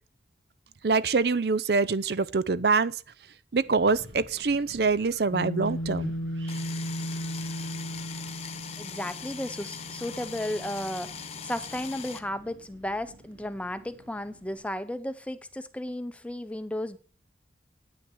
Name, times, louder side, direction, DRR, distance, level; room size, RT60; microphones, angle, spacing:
voice 1, 0.8-3.0 3.5-6.1, right 4 dB, 60° right, 0.6 m, -25 dB
Wind, 3.6-14.6, right 1 dB, 90° right, 2.2 m, -53 dB
sound 1, 5.3-12.0, equal, 90° left, 1.2 m, -36 dB
sound 2, 6.5-12.2, left 7 dB, 35° left, 1.0 m, -41 dB
voice 2, 8.8-17.0, left 1 dB, 5° left, 0.6 m, -34 dB
9.5 x 9.4 x 6.1 m
head